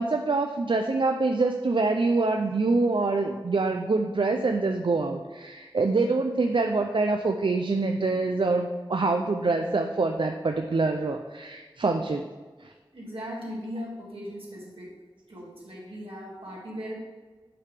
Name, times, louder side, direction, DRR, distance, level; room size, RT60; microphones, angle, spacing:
voice 1, 0.0-12.3 12.6-12.7, right 3 dB, 65° right, 5 dB, 0.4 m, -25 dB
voice 2, 12.9-14.9 15.3-17.0, equal, 85° right, -5 dB, 2.1 m, -38 dB
8.4 x 3.4 x 5.0 m, 1.3 s
wide cardioid pair, 40°, 9 cm